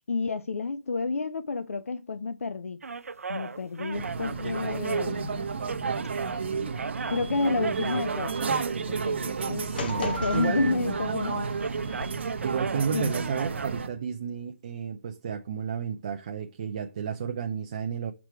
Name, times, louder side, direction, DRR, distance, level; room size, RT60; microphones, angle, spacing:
voice 1, 0.1-2.8 3.3-5.4 7.1-8.4 8.9-11.5 12.9-13.2, left 4 dB, 75° left, 0.7 m, -30 dB
sound 1, 2.8-6.4 6.7-9.2 9.9-10.7 11.0-11.2 11.5-13.8, right 4 dB, 75° right, 0.6 m, -37 dB
sound 2, 3.9-13.9, right 5 dB, 50° right, 0.9 m, -32 dB
voice 2, 9.5-10.7 12.4-18.1, right 7 dB, 25° right, 0.5 m, -32 dB
sound 3, 9.8-12.0, left 3 dB, 40° left, 1.4 m, -36 dB
6.1 x 4.7 x 4.7 m
hypercardioid pair, 170°, 8 cm